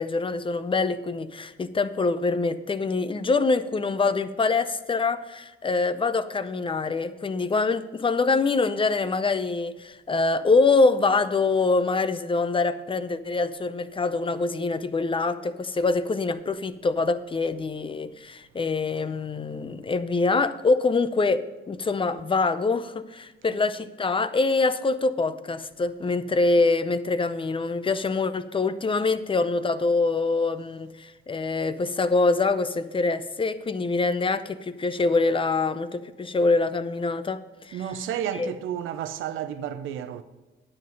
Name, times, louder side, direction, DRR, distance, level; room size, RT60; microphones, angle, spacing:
voice 1, 0.0-37.4 37.6-37.8 38.3-38.5, left 3 dB, 25° left, 0.6 m, -25 dB
voice 2, 37.7-40.2, right 9 dB, 85° right, 0.7 m, -31 dB
9.8 x 7.5 x 5.3 m
cardioid pair, 90°, 20 cm